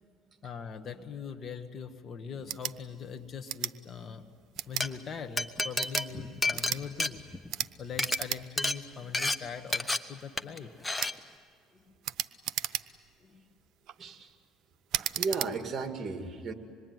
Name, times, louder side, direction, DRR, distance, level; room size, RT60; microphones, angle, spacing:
voice 1, 0.4-4.3 4.6-7.2 7.5-10.7 11.7-11.9 13.2-13.4, left 6 dB, 40° left, 8 dB, 1.6 m, -42 dB
sound 1, 2.4-2.8 3.5-3.7 4.5-4.9 5.7-6.1 6.5-6.8 7.5-7.7 8.0-8.4 8.8-8.9 9.7-9.8 11.0-11.2 12.0-13.1 13.7-14.0 14.9-15.5, right 12 dB, 65° right, 0.8 m, -34 dB
Glass, 4.6-4.9 5.4-7.6 7.9-8.2 8.6-8.8 9.1-9.4 9.7-10.0 10.4-10.6 10.8-11.1, left 2 dB, 10° left, 1.1 m, -30 dB
voice 2, 15.0-16.5, right 4 dB, 35° right, 6 dB, 2.3 m, -35 dB
26.0 x 21.5 x 9.5 m, 2.2 s
cardioid pair, 105°, 0 cm